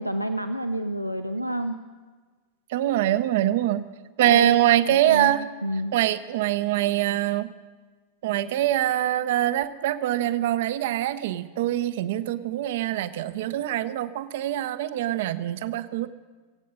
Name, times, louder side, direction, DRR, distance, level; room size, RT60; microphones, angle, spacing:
voice 1, 0.0-1.8 4.2-4.6 4.9-5.4 5.6-6.0, right 1 dB, 90° left, 10 dB, 0.4 m, -29 dB
voice 2, 2.7-3.8 4.2-5.4 5.9-7.5 8.2-16.1, right 13 dB, 55° right, 14 dB, 0.6 m, -24 dB
25.0 x 8.4 x 5.3 m, 1.4 s
figure-of-eight pair, 90°, 0 cm